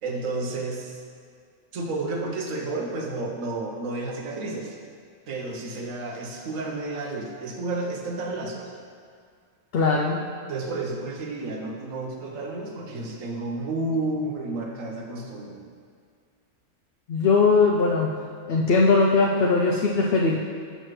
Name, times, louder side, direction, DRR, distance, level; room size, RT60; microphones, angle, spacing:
voice 1, 0.0-1.0 1.7-4.8 5.3-8.7 10.5-15.6, right 2 dB, 85° right, 0 dB, 1.2 m, -31 dB
voice 2, 9.7-10.2 17.1-18.1 18.5-20.4, left 4 dB, 60° left, -1 dB, 0.6 m, -20 dB
6.7 x 6.1 x 3.1 m, 2.1 s
omnidirectional pair, 1.3 m